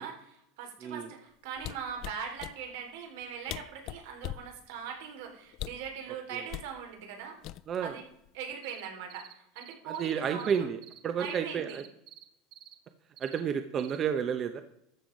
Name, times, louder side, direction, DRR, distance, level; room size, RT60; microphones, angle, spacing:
voice 1, 0.0-7.4 7.8-8.0 8.3-10.7 11.2-11.8, right 7 dB, 75° right, 3 dB, 3.6 m, -41 dB
sound 1, 1.6-2.6 3.2-3.3 3.5-4.5 5.5-5.9 6.5-6.7 7.4-7.9 8.2-8.5, left 15 dB, 45° left, 0.4 m, -39 dB
sound 2, 8.6-10.1 10.4-11.4 11.7-12.2 12.5-12.7 13.2-13.4 13.8-14.0, right 12 dB, 45° right, 1.1 m, -50 dB
voice 2, 9.8-11.8 13.2-14.6, right 7 dB, 30° right, 9 dB, 0.8 m, -31 dB
13.5 x 7.7 x 5.2 m, 0.76 s
supercardioid pair, 150°, 0 cm